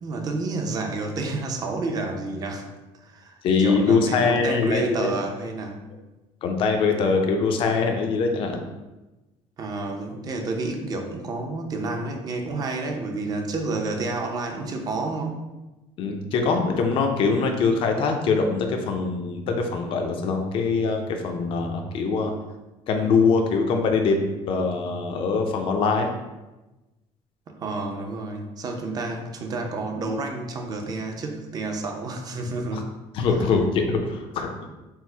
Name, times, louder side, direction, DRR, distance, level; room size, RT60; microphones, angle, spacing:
voice 1, 0.0-2.7 3.0-5.8 9.6-15.4 27.5-32.9 33.3-33.4, right 3 dB, 35° right, 3 dB, 0.6 m, -30 dB
voice 2, 3.4-5.1 6.4-8.6 16.0-22.3 22.9-24.2 24.5-26.1 33.1-34.5, left 4 dB, 50° left, 4 dB, 0.5 m, -23 dB
4.5 x 2.0 x 4.3 m, 1.1 s
cardioid pair, 145°, 11 cm